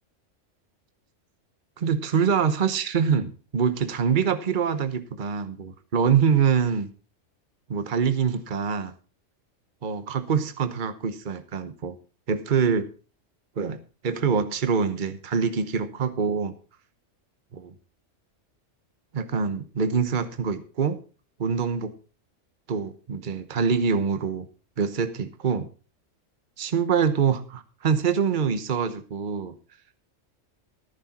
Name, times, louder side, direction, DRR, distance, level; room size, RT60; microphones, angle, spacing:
voice 1, 1.8-6.9 7.7-8.9 9.8-11.9 12.3-12.9 13.6-13.8 14.0-16.5 17.5-17.7 19.1-21.0 21.4-21.9 22.7-24.5 24.8-25.7 26.6-29.6, right 6 dB, 45° right, 11 dB, 1.1 m, -25 dB
14.5 x 9.8 x 4.2 m, 0.35 s
omnidirectional pair, 1.3 m